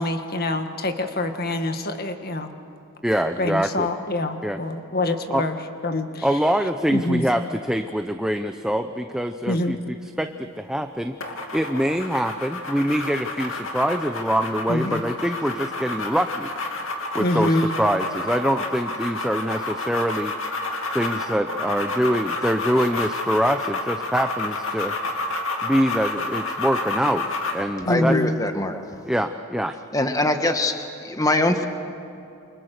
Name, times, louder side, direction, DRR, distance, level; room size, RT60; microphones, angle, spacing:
voice 1, 0.0-2.5 3.4-5.6 5.8-6.3 6.9-7.3 9.5-9.7 14.7-15.0 17.2-17.7 27.9-28.3, left 1 dB, 45° left, 6 dB, 1.8 m, -25 dB
voice 2, 3.0-3.9 4.4-4.6 5.3-5.5 6.2-11.1 11.5-16.5 17.1-20.3 20.9-25.0 25.6-28.2 28.7-29.7, equal, 5° right, 6 dB, 0.6 m, -24 dB
sound 1, 11.2-27.7, left 2 dB, 65° left, 2.8 m, -30 dB
voice 3, 27.9-28.7 29.9-30.7 31.0-31.7, left 1 dB, 15° left, 6 dB, 1.3 m, -22 dB
29.0 x 26.0 x 6.7 m, 2.8 s
head